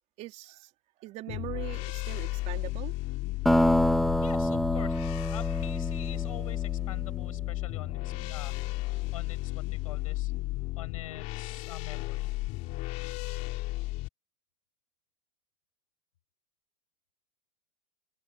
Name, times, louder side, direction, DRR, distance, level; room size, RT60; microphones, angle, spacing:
voice 1, 0.2-0.7 1.0-2.9, right 18 dB, 40° right, 3.6 m, -41 dB
sound 1, 1.3-14.1, left 20 dB, 45° left, 2.8 m, -34 dB
sound 2, 3.5-7.7, equal, ahead, 2.1 m, -28 dB
voice 2, 4.2-10.3 10.7-12.3, left 12 dB, 85° left, 6.2 m, -46 dB
supercardioid pair, 140°, 17 cm